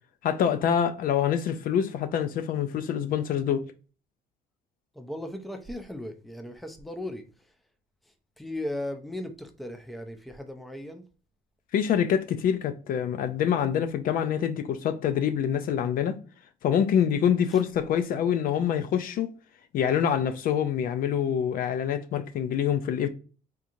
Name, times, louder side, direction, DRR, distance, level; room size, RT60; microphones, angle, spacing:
voice 1, 0.2-3.7 11.7-16.2 16.6-19.3 19.7-23.1, left 8 dB, 55° left, 0.4 m, -26 dB
voice 2, 4.9-7.5 8.4-11.0 17.5-17.6, left 1 dB, ahead, 0.5 m, -37 dB
3.6 x 2.9 x 2.5 m
cardioid pair, 110°, 17 cm